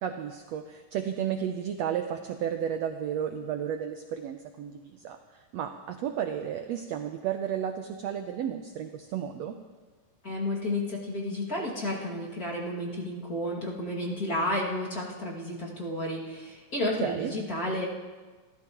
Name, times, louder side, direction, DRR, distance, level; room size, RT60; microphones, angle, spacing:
voice 1, 0.0-9.5 16.8-17.3, right 9 dB, 85° right, 6 dB, 1.4 m, -33 dB
voice 2, 10.2-17.9, left 1 dB, 30° left, -5 dB, 2.4 m, -32 dB
28.5 x 13.5 x 3.0 m, 1.4 s
omnidirectional pair, 3.8 m